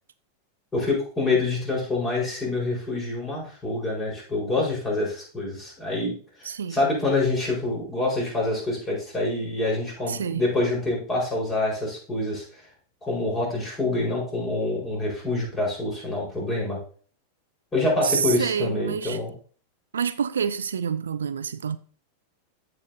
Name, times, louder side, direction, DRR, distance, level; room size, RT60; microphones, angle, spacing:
voice 1, 0.7-6.1 6.4-12.6 13.0-16.8 17.7-19.3, left 2 dB, 15° left, 4.8 m, -26 dB
voice 2, 6.4-6.8 10.1-10.4 18.0-19.2 19.9-21.8, right 7 dB, 70° right, 0.4 m, -27 dB
14.5 x 5.4 x 2.8 m
figure-of-eight pair, 90°, 0 cm